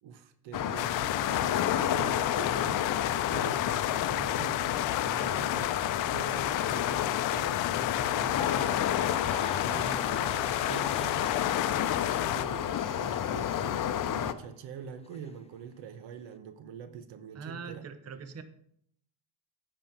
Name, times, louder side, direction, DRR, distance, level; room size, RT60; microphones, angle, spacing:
voice 1, 0.0-9.1 9.6-11.6 12.1-17.9, right 6 dB, 85° right, 11 dB, 1.1 m, -44 dB
sound 1, 0.5-14.3, left 10 dB, 45° left, 0.7 m, -30 dB
sound 2, 0.8-12.4, left 16 dB, 85° left, 0.6 m, -33 dB
sound 3, 8.2-14.5 14.8-15.3, left 5 dB, 15° left, 0.3 m, -43 dB
voice 2, 17.3-18.4, right 5 dB, 35° right, 10 dB, 0.8 m, -42 dB
8.9 x 5.3 x 6.6 m, 0.68 s
cardioid pair, 125°, 44 cm